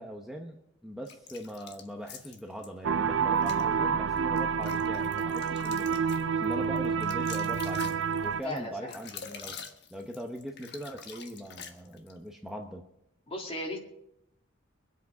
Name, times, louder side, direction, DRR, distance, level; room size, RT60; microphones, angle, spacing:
voice 1, 0.0-9.6 9.9-12.8, equal, ahead, 1 dB, 0.9 m, -41 dB
sound 1, 1.0-2.7 3.3-3.6 4.2-12.2, left 6 dB, 60° left, 1.3 m, -46 dB
sound 2, 2.8-8.4, right 6 dB, 70° right, 0.5 m, -28 dB
voice 2, 8.4-8.9 13.3-13.8, left 1 dB, 30° left, 2 dB, 2.1 m, -36 dB
24.0 x 8.2 x 4.8 m, 0.80 s
head